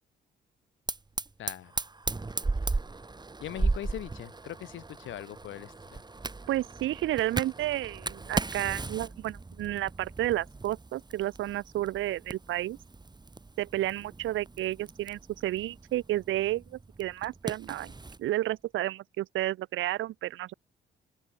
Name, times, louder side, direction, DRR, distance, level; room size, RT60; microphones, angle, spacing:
Fire, 0.9-18.2, right 3 dB, 20° right, 4.9 m, -37 dB
voice 1, 1.4-1.7 3.4-6.0, left 12 dB, 75° left, 2.6 m, -41 dB
voice 2, 6.5-12.8 13.6-17.9 18.2-20.5, right 14 dB, 80° right, 0.9 m, -31 dB
open air
cardioid pair, 90°, 20 cm